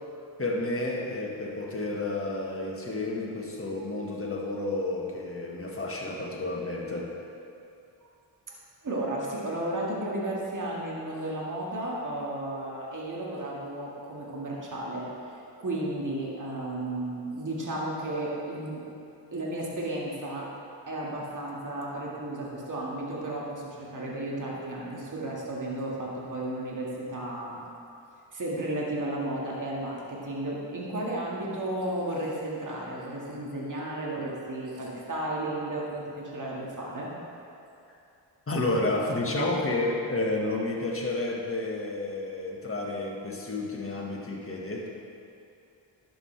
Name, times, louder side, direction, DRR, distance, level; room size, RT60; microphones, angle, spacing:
voice 1, 0.4-7.1 38.5-44.9, left 2 dB, 30° left, -2 dB, 1.7 m, -31 dB
voice 2, 8.8-15.1 15.6-18.8 19.3-20.5 20.9-27.6 28.3-37.1, right 1 dB, 40° right, -4 dB, 2.0 m, -33 dB
11.0 x 7.6 x 3.4 m, 2.6 s
cardioid pair, 55°, 45 cm